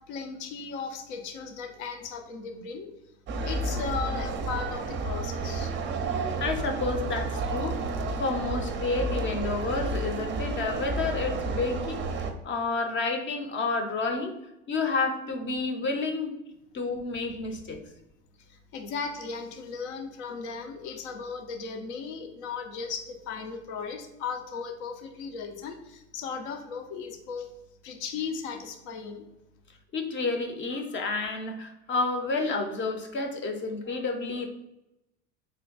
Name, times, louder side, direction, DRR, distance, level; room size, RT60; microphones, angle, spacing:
voice 1, 0.1-2.9 3.4-5.7 18.5-27.5 27.8-29.2, left 5 dB, 70° left, 6 dB, 0.7 m, -36 dB
sound 1, 3.3-12.3, right 3 dB, 30° right, 0.5 m, -31 dB
voice 2, 6.4-7.8 8.2-14.3 14.7-16.4 16.7-17.8 29.9-34.5, left 3 dB, 35° left, 5 dB, 0.6 m, -30 dB
3.5 x 2.2 x 3.9 m, 0.90 s
hypercardioid pair, 80°, 36 cm